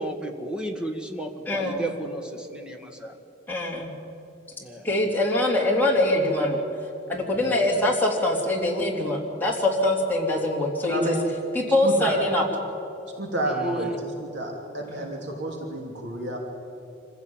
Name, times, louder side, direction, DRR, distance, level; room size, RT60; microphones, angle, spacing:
voice 1, 0.0-3.1 4.6-4.9 7.3-7.8 13.5-13.9, right 1 dB, 5° right, 3 dB, 1.8 m, -34 dB
voice 2, 1.5-1.9 3.5-3.9 4.8-6.6 7.1-11.1 11.6-12.4 14.9-15.1, left 1 dB, 10° left, -3 dB, 3.3 m, -23 dB
voice 3, 10.8-11.2 11.8-12.1 13.2-16.4, right 1 dB, 70° right, 0 dB, 3.0 m, -29 dB
26.0 x 15.5 x 8.9 m, 2.9 s
head